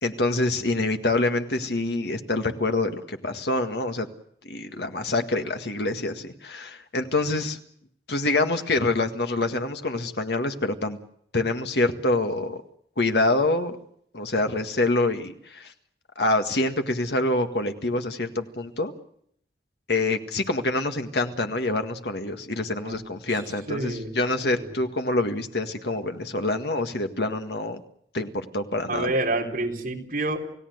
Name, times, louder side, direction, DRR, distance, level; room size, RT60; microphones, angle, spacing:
voice 1, 0.0-4.1 4.4-7.6 8.1-11.0 11.3-12.6 13.0-13.8 14.1-15.7 16.2-18.9 19.9-27.8 28.1-29.1, left 2 dB, 65° left, 6 dB, 1.8 m, -26 dB
voice 2, 23.7-24.1 24.6-24.7 28.9-30.4, right 2 dB, 50° right, 1 dB, 4.0 m, -28 dB
29.0 x 17.0 x 8.0 m, 0.69 s
head